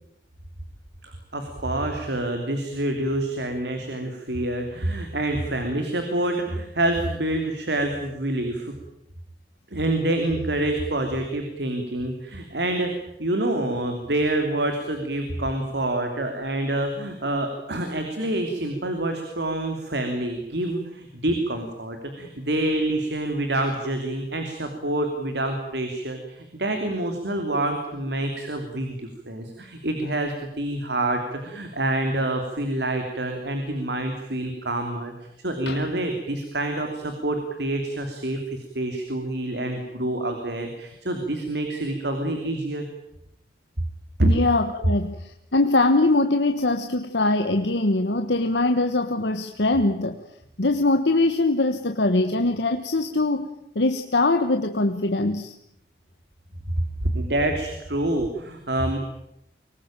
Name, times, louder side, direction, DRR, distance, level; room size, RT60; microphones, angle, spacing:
voice 1, 1.0-8.7 9.7-35.1 35.4-42.8 44.2-44.3 57.1-59.0, right 1 dB, 80° right, 5 dB, 3.1 m, -27 dB
voice 2, 44.3-50.2 50.6-53.5 53.7-55.5, left 2 dB, 85° left, 7 dB, 1.3 m, -22 dB
24.0 x 19.0 x 9.0 m, 0.80 s
head